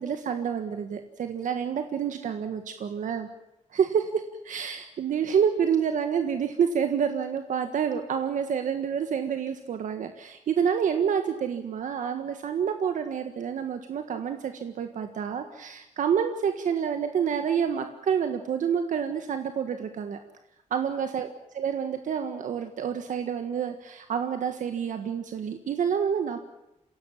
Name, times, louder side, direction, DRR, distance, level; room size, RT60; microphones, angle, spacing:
voice 1, 0.0-3.3 3.7-20.2 20.7-21.3 21.6-26.4, right 7 dB, 90° right, 7 dB, 1.6 m, -28 dB
27.5 x 17.0 x 7.5 m, 0.88 s
wide cardioid pair, 145°, 13 cm